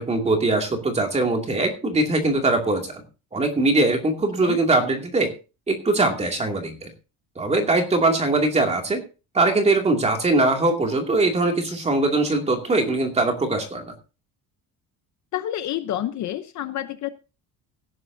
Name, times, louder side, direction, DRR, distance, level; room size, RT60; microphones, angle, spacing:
voice 1, 0.0-3.0 3.3-5.3 5.7-6.9 7.4-9.0 9.3-13.9, right 2 dB, 15° right, 3 dB, 2.5 m, -21 dB
voice 2, 15.3-17.1, left 12 dB, 45° left, 11 dB, 0.8 m, -29 dB
17.0 x 11.0 x 2.7 m, 0.32 s
cardioid pair, 175°, 39 cm